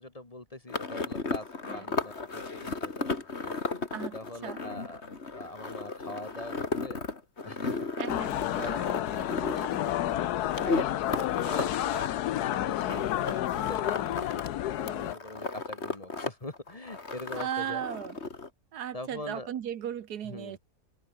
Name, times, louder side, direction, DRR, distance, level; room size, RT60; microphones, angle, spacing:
voice 1, 0.0-3.5 4.1-7.0 7.4-8.0 8.3-9.8 10.0-11.7 12.1-12.2 12.5-17.8 18.9-19.5 20.2-20.6, left 2 dB, 25° left, 1.8 m, -43 dB
sound 1, 0.7-14.5 14.7-16.3 16.5-18.5, left 3 dB, 45° left, 2.7 m, -35 dB
voice 2, 8.0-8.3 17.4-18.2 18.7-20.6, right 9 dB, 85° right, 1.6 m, -36 dB
sound 2, 8.1-15.1, left 13 dB, 85° left, 1.3 m, -30 dB
open air
omnidirectional pair, 1.6 m